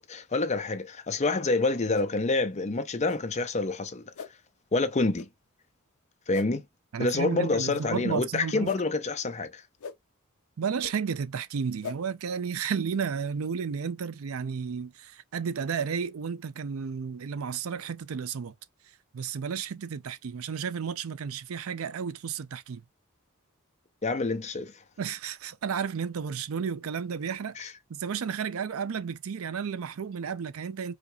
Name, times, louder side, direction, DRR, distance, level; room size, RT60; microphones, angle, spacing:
voice 1, 0.0-4.0 4.7-5.3 6.3-6.7 7.0-9.6 24.0-24.7 27.6-27.7, left 3 dB, 35° left, 0.6 m, -27 dB
sound 1, 1.9-2.1 3.0-3.2 4.1-4.3 5.1-5.3 6.3-6.5 7.7-7.9 8.6-8.8 9.8-10.0 10.8-10.9 11.8-12.0, left 6 dB, 80° left, 0.5 m, -39 dB
voice 2, 6.9-8.7 10.6-18.5 19.1-22.8 25.0-27.6 27.9-30.9, right 6 dB, 85° right, 0.5 m, -32 dB
5.0 x 2.0 x 2.7 m
head